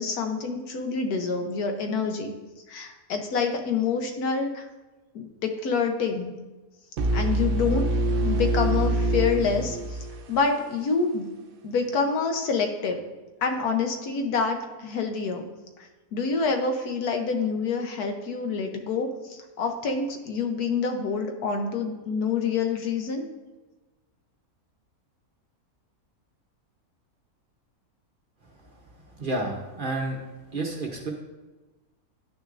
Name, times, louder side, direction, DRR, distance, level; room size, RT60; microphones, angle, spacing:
voice 1, 0.0-2.3 2.7-4.6 5.1-6.3 7.1-7.9 8.1-9.8 10.3-11.3 11.6-13.0 13.4-15.4 16.1-23.3, left 5 dB, 85° left, 4 dB, 1.4 m, -27 dB
sound 1, 7.0-10.8, right 1 dB, 70° right, 0.5 m, -25 dB
voice 2, 29.2-30.2 30.5-31.1, right 2 dB, 45° right, 1 dB, 0.8 m, -30 dB
10.5 x 6.2 x 2.5 m, 1.2 s
omnidirectional pair, 1.6 m